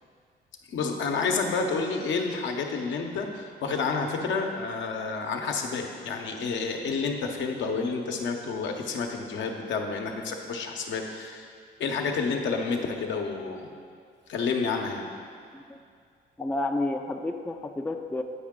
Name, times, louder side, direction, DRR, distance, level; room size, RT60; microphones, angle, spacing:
voice 1, 0.7-11.5 11.8-13.7 14.3-15.1, left 4 dB, 70° left, 3 dB, 0.8 m, -29 dB
voice 2, 16.4-18.2, left 2 dB, 10° left, 5 dB, 0.3 m, -30 dB
8.5 x 4.7 x 3.7 m, 2.1 s
cardioid pair, 90°, 20 cm